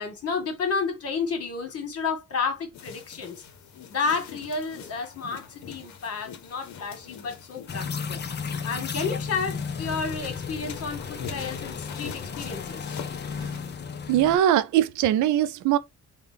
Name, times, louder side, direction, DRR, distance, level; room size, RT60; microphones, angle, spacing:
voice 1, 0.0-3.4 3.9-8.2 8.6-12.8, left 5 dB, 50° left, 1.5 m, -31 dB
sound 1, 2.7-13.8, left 7 dB, 70° left, 0.9 m, -44 dB
sound 2, 7.7-14.4, left 6 dB, 35° left, 0.7 m, -34 dB
voice 2, 14.1-15.8, right 12 dB, 75° right, 0.5 m, -21 dB
3.6 x 2.3 x 3.4 m
cardioid pair, 90°, 30 cm